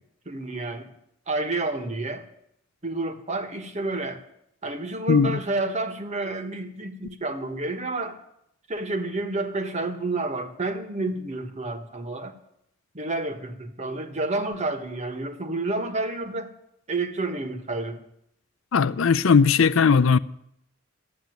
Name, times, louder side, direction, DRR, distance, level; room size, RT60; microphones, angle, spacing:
voice 1, 0.2-0.9 1.3-2.2 2.8-4.2 4.6-8.2 8.7-12.3 12.9-16.5 16.9-18.0, right 2 dB, 35° right, 1.4 m, -29 dB
voice 2, 5.1-5.4 18.7-20.2, left 5 dB, 80° left, 0.5 m, -18 dB
13.0 x 8.7 x 9.3 m
head